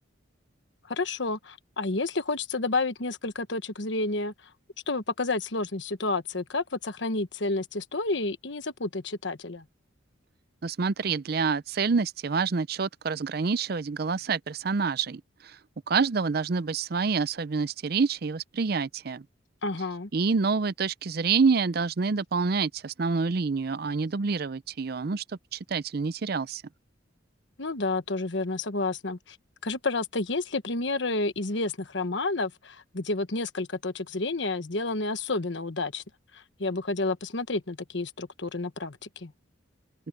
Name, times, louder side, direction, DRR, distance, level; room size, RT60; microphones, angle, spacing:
voice 1, 0.9-4.3 4.9-9.6 19.6-20.1 27.6-29.4 29.6-36.0 36.3-39.3, left 3 dB, 65° left, 1.2 m, -30 dB
voice 2, 10.6-15.6 15.9-19.2 20.1-25.2 25.5-26.6, right 5 dB, 50° right, 0.5 m, -27 dB
open air
head